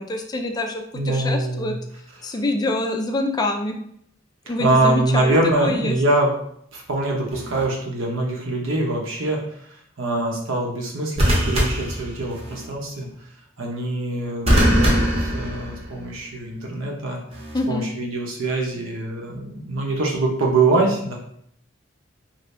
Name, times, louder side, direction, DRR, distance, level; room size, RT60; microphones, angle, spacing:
voice 1, 0.0-1.8 2.2-3.8 4.5-6.0 17.5-17.9, left 2 dB, 20° left, 4 dB, 0.3 m, -25 dB
voice 2, 0.9-1.7 2.2-2.3 4.6-6.3 6.7-9.4 10.0-13.1 13.6-17.2 17.7-21.2, right 2 dB, 75° right, -1 dB, 0.8 m, -23 dB
sound 1, 7.3-7.6 11.2-12.6 14.5-16.1 17.3-17.6, equal, 30° right, 0.8 m, -21 dB
2.7 x 2.5 x 3.2 m, 0.68 s
head